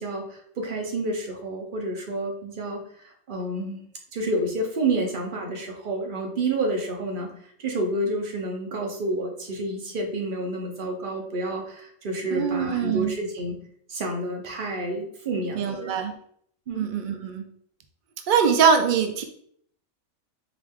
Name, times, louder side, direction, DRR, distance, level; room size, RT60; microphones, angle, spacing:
voice 1, 0.0-3.8 4.1-7.3 7.6-13.6 13.9-15.9 16.7-16.9, right 2 dB, 45° right, 1 dB, 0.9 m, -29 dB
voice 2, 12.3-13.1 15.5-16.2 16.7-17.4 18.3-19.2, right 6 dB, 90° right, 6 dB, 0.4 m, -23 dB
4.8 x 2.6 x 3.5 m, 0.64 s
omnidirectional pair, 1.4 m